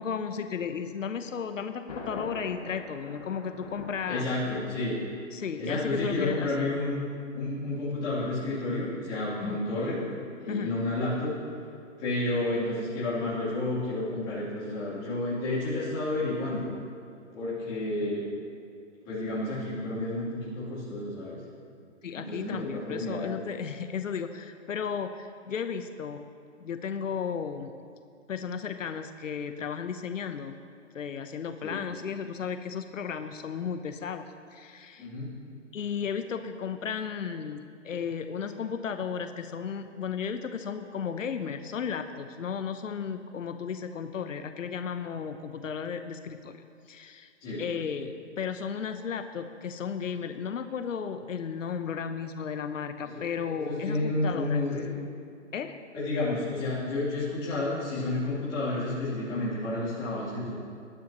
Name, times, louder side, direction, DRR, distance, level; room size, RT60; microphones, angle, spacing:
voice 1, 0.0-4.3 5.3-6.7 9.4-9.7 10.5-10.8 22.0-26.2 26.6-27.7 28.3-30.6 30.9-34.3 34.5-35.1 35.7-47.3 47.6-54.6 55.5-55.8, left 7 dB, 85° left, 8 dB, 0.9 m, -34 dB
Thunder, 1.9-4.9, left 3 dB, 30° left, 2.0 m, -42 dB
voice 2, 4.1-4.9 5.6-7.0 7.3-11.3 12.0-16.7 17.3-18.2 19.0-21.4 22.1-23.4 31.6-31.8 35.0-35.3 47.4-47.6 53.0-53.2 53.4-54.8 55.9-60.5, left 2 dB, 15° left, -11 dB, 3.3 m, -31 dB
19.5 x 10.0 x 3.0 m, 2.3 s
hypercardioid pair, 175°, 37 cm